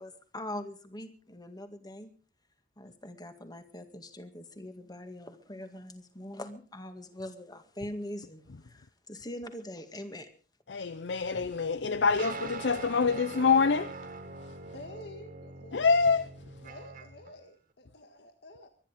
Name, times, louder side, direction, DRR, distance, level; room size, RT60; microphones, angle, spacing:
voice 1, 0.0-2.1 2.8-10.3, left 1 dB, 25° left, 2.0 m, -42 dB
voice 2, 10.7-13.9 15.7-16.3, left 5 dB, 90° left, 0.7 m, -26 dB
sound 1, 12.2-17.3, right 3 dB, 55° right, 2.1 m, -43 dB
voice 3, 14.7-15.8 16.6-18.7, left 1 dB, 70° left, 1.6 m, -49 dB
24.0 x 10.5 x 5.1 m
head